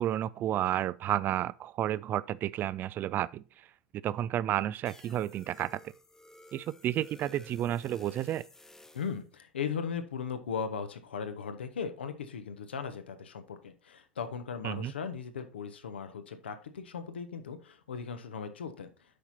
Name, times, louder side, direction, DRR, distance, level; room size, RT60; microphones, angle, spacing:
voice 1, 0.0-3.7 4.0-5.9 6.5-8.5 14.6-14.9, right 12 dB, 35° right, 0.4 m, -31 dB
sound 1, 4.9-9.2, left 1 dB, 10° left, 0.8 m, -55 dB
voice 2, 8.9-18.9, left 6 dB, 70° left, 1.2 m, -38 dB
8.4 x 5.8 x 4.1 m
figure-of-eight pair, 80°, 6 cm